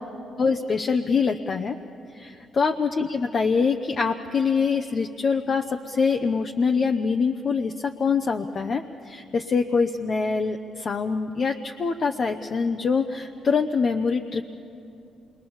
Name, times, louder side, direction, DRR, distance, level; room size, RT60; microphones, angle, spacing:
voice 1, 0.4-1.8 2.1-14.4, left 5 dB, 45° left, 4 dB, 0.8 m, -24 dB
27.5 x 22.0 x 7.2 m, 2.7 s
cardioid pair, 90°, 0 cm